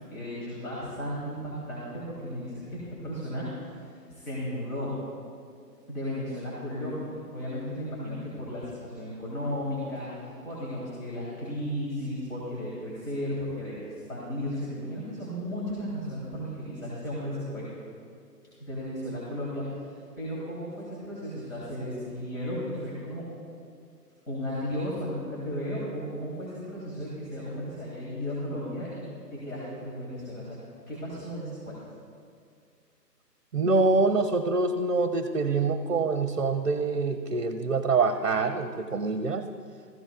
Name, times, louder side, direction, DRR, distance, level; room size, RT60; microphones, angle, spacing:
voice 1, 0.1-3.8 4.1-4.9 5.9-10.1 10.4-13.8 14.1-17.7 18.6-19.7 20.2-23.3 24.3-30.6 30.9-31.8, equal, 50° left, -7 dB, 3.3 m, -34 dB
voice 2, 33.5-39.5, right 3 dB, 50° right, 9 dB, 0.6 m, -25 dB
15.5 x 15.0 x 2.4 m, 2.3 s
figure-of-eight pair, 140°, 49 cm